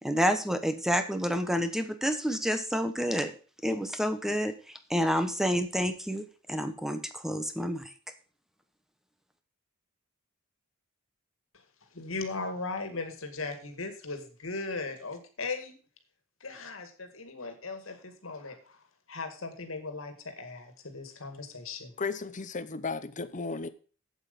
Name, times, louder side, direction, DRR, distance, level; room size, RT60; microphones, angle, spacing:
voice 1, 0.0-3.3 3.6-7.9, equal, ahead, 1.1 m, -29 dB
voice 2, 11.9-15.8 16.4-18.8 19.1-21.9, left 3 dB, 75° left, 2.0 m, -38 dB
voice 3, 22.0-23.7, left 4 dB, 40° left, 0.8 m, -34 dB
8.0 x 8.0 x 5.3 m
head